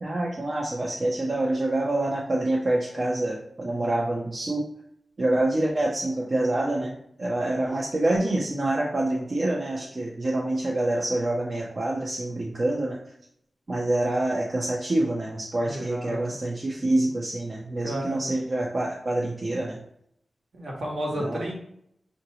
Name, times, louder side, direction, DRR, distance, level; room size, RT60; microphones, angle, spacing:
voice 1, 0.0-4.6 5.2-13.0 13.7-19.8 21.2-21.4, right 1 dB, 40° right, -2 dB, 0.6 m, -26 dB
voice 2, 15.6-16.4 17.8-18.3 20.5-21.5, equal, 65° right, -2 dB, 1.1 m, -32 dB
5.4 x 2.6 x 2.8 m, 0.70 s
wide cardioid pair, 115°, 0 cm